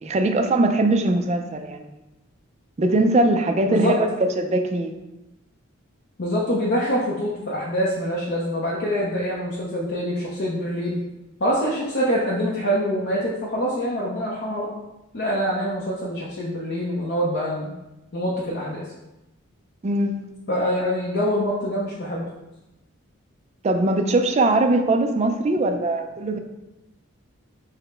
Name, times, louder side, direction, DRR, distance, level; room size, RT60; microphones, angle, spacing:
voice 1, 0.0-1.9 2.8-4.9 19.8-20.2 23.6-26.4, right 2 dB, 30° right, 6 dB, 0.3 m, -21 dB
voice 2, 6.2-11.0 11.4-14.7 15.1-17.7 18.1-18.9 20.5-22.3, equal, 50° left, -5 dB, 0.6 m, -25 dB
4.8 x 2.1 x 4.3 m, 0.97 s
head